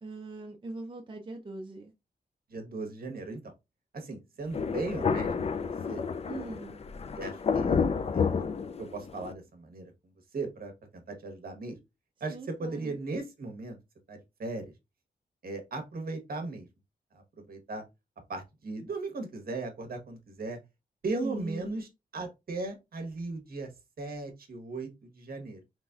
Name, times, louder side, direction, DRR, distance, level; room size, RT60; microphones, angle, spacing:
voice 1, 0.0-1.9 6.3-6.8 12.3-12.9 21.2-21.7, right 3 dB, 30° right, 0.6 m, -41 dB
voice 2, 2.5-3.5 3.9-6.0 6.4-6.6 7.2-7.9 8.1-8.4 8.8-9.9 10.3-11.8 12.2-13.8 14.1-14.6 15.4-16.7 17.1-17.8 18.3-20.6 21.0-23.7 24.0-25.6, right 3 dB, 60° right, 1.0 m, -37 dB
Thunder, 4.5-9.3, left 5 dB, 40° left, 0.3 m, -30 dB
4.0 x 3.1 x 2.3 m
wide cardioid pair, 100°, 17 cm